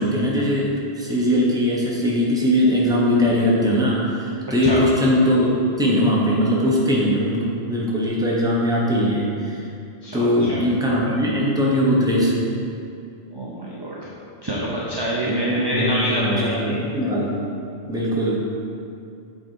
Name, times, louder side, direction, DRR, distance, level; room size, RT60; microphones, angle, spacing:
voice 1, 0.0-9.7 10.1-12.3 15.2-17.3 17.9-18.5, equal, 5° right, -5 dB, 1.0 m, -20 dB
voice 2, 10.0-10.6 11.1-11.2 13.3-14.1 14.4-16.8, right 1 dB, 25° right, -6 dB, 0.7 m, -26 dB
8.0 x 3.7 x 4.6 m, 2.6 s
omnidirectional pair, 1.2 m